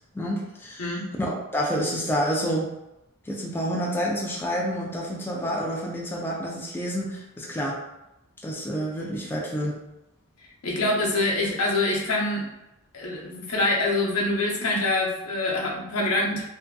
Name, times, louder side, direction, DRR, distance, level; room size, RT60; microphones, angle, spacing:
voice 1, 0.1-2.7 3.3-7.8 8.4-9.8, equal, 10° left, -3 dB, 0.3 m, -28 dB
voice 2, 10.6-12.4 12.9-16.4, left 2 dB, 80° left, -2 dB, 0.7 m, -25 dB
2.6 x 2.3 x 2.2 m, 0.92 s
head